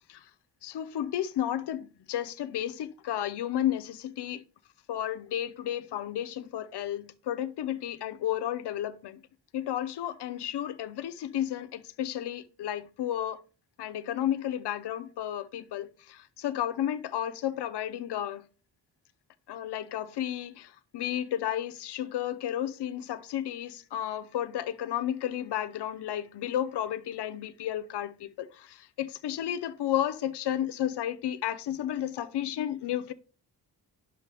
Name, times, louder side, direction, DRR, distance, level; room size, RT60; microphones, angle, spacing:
voice 1, 0.6-4.4 4.9-9.2 9.5-13.4 13.8-18.4 19.5-33.1, left 11 dB, 75° left, 0.7 m, -32 dB
9.8 x 6.3 x 3.4 m
wide cardioid pair, 180°, 40 cm